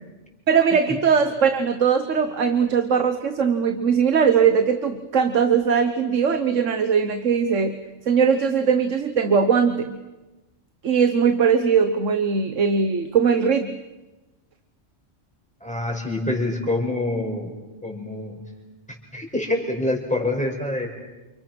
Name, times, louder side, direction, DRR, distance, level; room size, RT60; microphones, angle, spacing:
voice 1, 0.5-7.8 8.1-10.0 10.8-13.8, right 6 dB, 80° right, 8 dB, 1.6 m, -20 dB
voice 2, 15.6-17.5 17.8-18.4 19.1-20.9, left 2 dB, 5° left, 1 dB, 6.1 m, -26 dB
29.5 x 29.0 x 6.2 m, 1.1 s
omnidirectional pair, 1.3 m